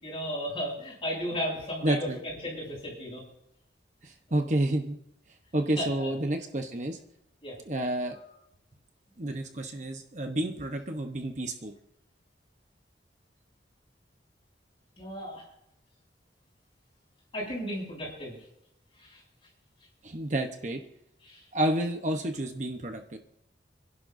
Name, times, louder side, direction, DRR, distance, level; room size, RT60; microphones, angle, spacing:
voice 1, 0.0-3.2 5.8-6.1 7.4-7.5 15.0-15.4 17.3-18.4 19.1-19.2 21.3-21.4, equal, 30° left, -4 dB, 7.3 m, -34 dB
voice 2, 1.8-2.2 4.0-5.0 5.5-7.0 7.7-8.2 9.2-11.7 20.0-20.8 21.5-23.2, right 1 dB, 40° right, 4 dB, 1.0 m, -30 dB
29.5 x 11.0 x 2.7 m, 0.81 s
head